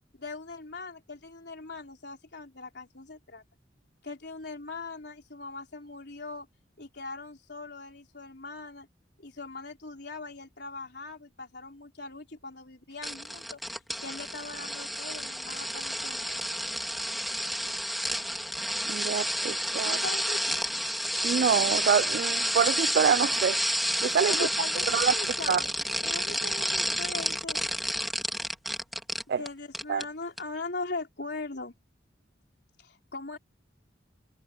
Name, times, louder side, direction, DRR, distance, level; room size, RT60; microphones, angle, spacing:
voice 1, 0.2-3.4 4.0-6.5 6.8-8.9 9.2-13.6 14.0-16.4 19.8-20.7 24.3-25.7 26.0-27.6 29.4-31.7 32.8-33.4, left 3 dB, 60° left, 4.1 m, -40 dB
sound 1, 13.0-29.5 29.7-30.0 30.4-30.5, equal, ahead, 2.5 m, -30 dB
voice 2, 18.9-20.0 21.2-23.6 24.0-24.5 24.9-25.1 25.5-25.6 29.3-29.4 29.9-30.0, right 7 dB, 55° right, 0.3 m, -26 dB
head